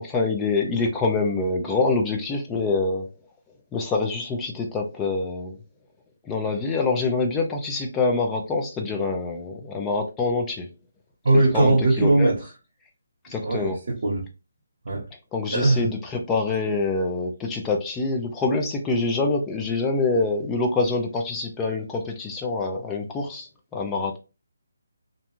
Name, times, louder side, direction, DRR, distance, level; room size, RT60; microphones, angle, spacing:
voice 1, 0.0-3.1 3.7-5.6 6.2-10.7 11.3-12.3 13.3-13.8 15.3-24.2, left 3 dB, 10° left, 0.4 m, -25 dB
voice 2, 11.2-12.4 13.3-14.3 14.8-15.0 15.5-15.9, right 2 dB, 60° right, 0.9 m, -20 dB
2.5 x 2.2 x 2.8 m
hypercardioid pair, 165°, 0 cm